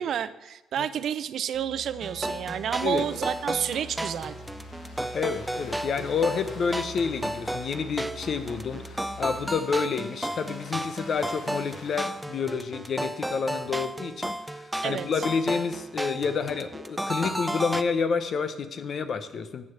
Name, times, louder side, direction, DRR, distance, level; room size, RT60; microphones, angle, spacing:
voice 1, 0.0-4.4 14.8-15.1, right 9 dB, 65° right, 15 dB, 0.4 m, -30 dB
Musical instrument, 1.5-9.5, equal, 30° left, 1.8 m, -45 dB
sound 1, 2.0-17.8, right 1 dB, 5° right, 0.4 m, -33 dB
sound 2, 2.7-13.2, left 3 dB, 75° left, 1.8 m, -50 dB
voice 2, 5.1-19.6, left 5 dB, 55° left, 11 dB, 0.8 m, -29 dB
7.8 x 6.3 x 7.2 m, 1.0 s
cardioid pair, 90°, 0 cm